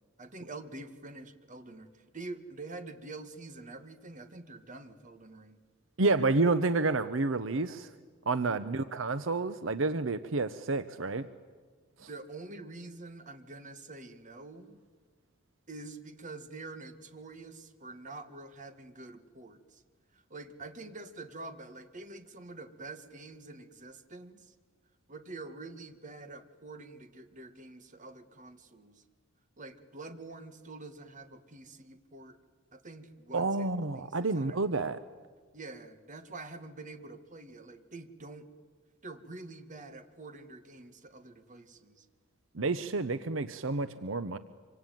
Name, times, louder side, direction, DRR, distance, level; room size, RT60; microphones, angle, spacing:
voice 1, 0.2-5.6 8.5-8.6 12.1-14.8 15.7-19.8 20.1-24.5 25.1-29.0 29.6-32.4 32.7-34.6 35.5-38.5 39.0-42.1, right 2 dB, 40° right, 9 dB, 1.9 m, -46 dB
voice 2, 6.0-7.9 8.3-11.3 33.3-35.0 42.5-44.4, right 3 dB, 75° right, 13 dB, 0.9 m, -29 dB
25.5 x 24.5 x 9.3 m, 1.5 s
head